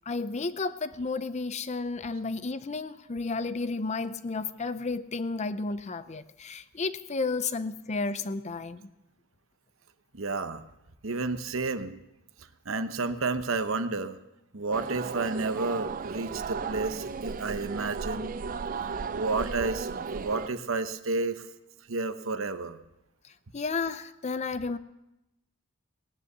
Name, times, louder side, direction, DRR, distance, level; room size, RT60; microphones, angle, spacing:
voice 1, 0.1-8.9 23.5-24.8, left 3 dB, 35° left, 0.5 m, -32 dB
voice 2, 10.1-10.6 11.0-12.0 12.7-14.2 14.5-18.3 18.8-21.4 21.9-22.8, right 3 dB, 70° right, 0.9 m, -31 dB
sound 1, 14.7-20.5, right 5 dB, 40° right, 0.4 m, -35 dB
18.0 x 9.7 x 6.8 m
head